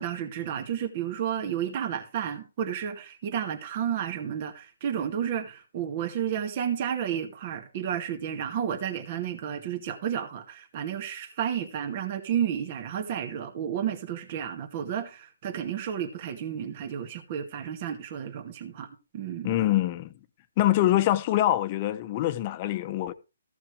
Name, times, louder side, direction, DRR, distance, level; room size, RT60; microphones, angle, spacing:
voice 1, 0.0-18.9 19.1-19.5, right 9 dB, 40° right, 2.1 m, -32 dB
voice 2, 19.4-20.1 20.6-23.1, left 14 dB, 35° left, 1.2 m, -24 dB
15.0 x 6.0 x 4.9 m
hypercardioid pair, 145°, 0 cm